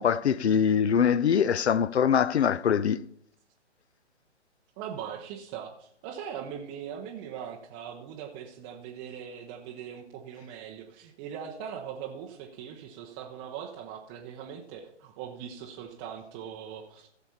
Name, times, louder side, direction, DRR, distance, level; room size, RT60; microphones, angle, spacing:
voice 1, 0.0-3.0, left 7 dB, 65° left, 0.6 m, -23 dB
voice 2, 4.8-17.1, right 8 dB, 15° right, 0.6 m, -40 dB
15.5 x 7.0 x 4.3 m
figure-of-eight pair, 130°, 35 cm